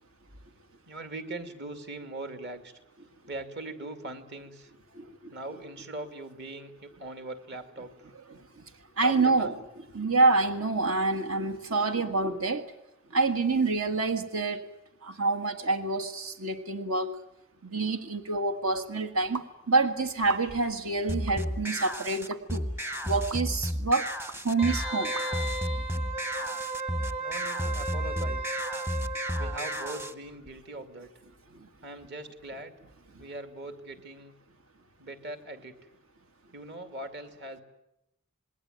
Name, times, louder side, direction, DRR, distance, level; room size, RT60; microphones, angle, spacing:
voice 1, 0.9-2.7 3.3-4.7 5.3-8.1 9.0-9.6 27.2-28.6 29.4-31.1 31.8-32.8 33.2-34.3 35.0-35.8 36.5-37.6, right 2 dB, 50° right, 7 dB, 2.7 m, -41 dB
voice 2, 4.9-5.4 9.0-9.5 9.9-12.6 13.1-14.7 15.0-17.1 17.6-22.7 23.0-24.1 24.4-25.1 31.5-31.7, right 3 dB, 70° right, 8 dB, 1.7 m, -27 dB
sound 1, 19.3-19.5 20.2-20.7 21.3-21.4 22.3-22.4 23.3-23.4 24.3-24.4 25.2-25.3, right 3 dB, 85° right, 1.8 m, -39 dB
sound 2, 21.1-30.1, equal, 10° right, 0.9 m, -33 dB
Wind instrument woodwind instrument, 24.6-30.1 30.5-30.6, right 2 dB, 25° right, 2.3 m, -35 dB
27.5 x 20.5 x 9.4 m, 0.85 s
head